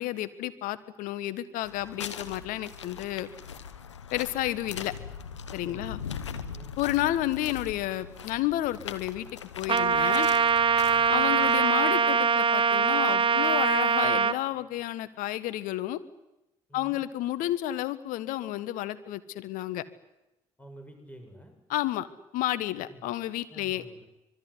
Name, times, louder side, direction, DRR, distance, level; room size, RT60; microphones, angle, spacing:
voice 1, 0.0-3.3 4.1-4.9 5.5-6.0 6.8-10.3 11.1-16.0 16.7-19.8 21.7-22.1 22.3-23.8, left 14 dB, 70° left, 14 dB, 1.5 m, -31 dB
sound 1, 1.6-11.6, left 7 dB, 90° left, 1.1 m, -41 dB
Trumpet, 9.7-14.4, right 6 dB, 35° right, 1.2 m, -23 dB
voice 2, 20.6-21.5 22.9-23.0 23.5-24.1, right 1 dB, 10° left, 5 dB, 7.1 m, -49 dB
25.0 x 22.0 x 10.0 m, 0.91 s
hypercardioid pair, 45°, 15 cm